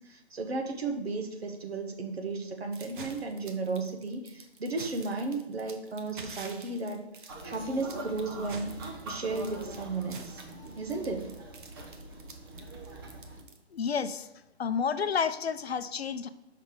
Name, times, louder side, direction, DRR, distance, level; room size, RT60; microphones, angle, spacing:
voice 1, 0.1-8.7 9.0-10.4 10.8-11.3, right 3 dB, 65° right, 3 dB, 1.2 m, -34 dB
sound 1, 2.7-13.9, right 4 dB, 50° right, 0.9 m, -47 dB
sound 2, 7.3-13.4, right 2 dB, 20° right, 0.7 m, -43 dB
voice 2, 13.7-14.3 14.6-16.3, left 6 dB, 65° left, 12 dB, 0.6 m, -30 dB
5.6 x 5.0 x 5.0 m, 0.88 s
figure-of-eight pair, 140°, 33 cm